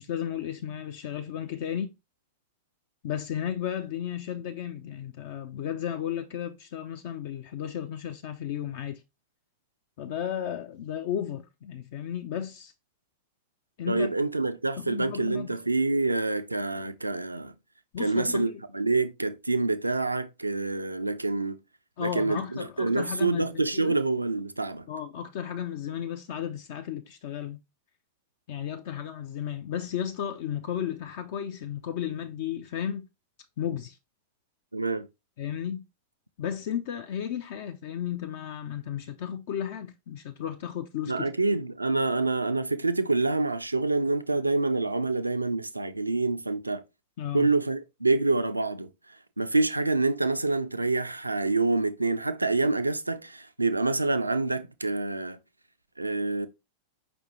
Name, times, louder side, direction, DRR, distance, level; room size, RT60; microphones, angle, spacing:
voice 1, 0.0-1.9 3.0-9.0 10.0-12.7 13.8-14.1 14.8-15.5 17.9-18.6 22.0-23.9 24.9-27.6 28.5-33.0 33.6-34.0 35.4-35.8 36.4-41.3 47.2-47.5, left 9 dB, 50° left, 0.4 m, -34 dB
voice 2, 13.9-17.5 18.0-21.6 22.0-24.9 34.7-35.1 41.1-46.8 47.3-48.9 49.4-55.4 56.0-56.5, right 3 dB, 85° right, 0.3 m, -27 dB
5.1 x 3.3 x 2.8 m
figure-of-eight pair, 90°, 0 cm